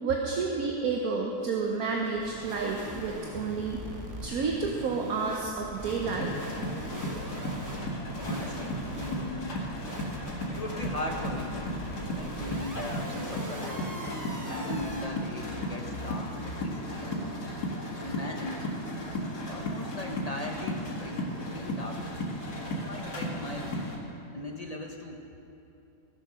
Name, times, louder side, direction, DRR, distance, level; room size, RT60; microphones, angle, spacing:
voice 1, 0.0-3.8 4.2-6.3, right 4 dB, 65° right, 0 dB, 1.3 m, -30 dB
sound 1, 1.4-15.1, equal, 15° right, 0.8 m, -41 dB
sound 2, 6.0-24.0, left 1 dB, 85° left, 2.4 m, -35 dB
voice 2, 7.9-9.6 10.5-11.7 12.1-13.9 14.5-17.2 18.0-18.7 19.4-22.1 22.6-24.0 24.3-25.2, left 1 dB, 40° left, 2 dB, 0.5 m, -39 dB
15.5 x 7.2 x 6.1 m, 3.0 s
omnidirectional pair, 1.7 m